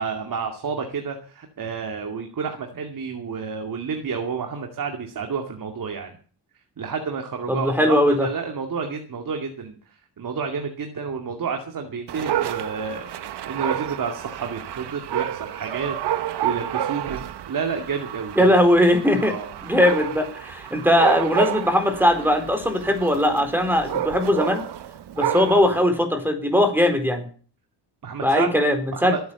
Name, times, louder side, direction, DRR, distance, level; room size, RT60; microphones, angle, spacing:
voice 1, 0.0-6.2 6.8-9.8 10.2-13.1 13.5-18.5 19.2-19.5 20.7-20.9 28.0-28.5 28.9-29.2, right 5 dB, 50° right, 4 dB, 2.4 m, -30 dB
voice 2, 7.5-8.3 18.4-19.3 19.6-24.6 25.1-27.3 28.2-28.8 29.0-29.1, left 1 dB, 5° right, 6 dB, 4.2 m, -19 dB
Dog, 12.1-25.8, right 11 dB, 70° right, 1.3 m, -30 dB
20.5 x 9.5 x 7.0 m, 0.43 s
cardioid pair, 100°, 42 cm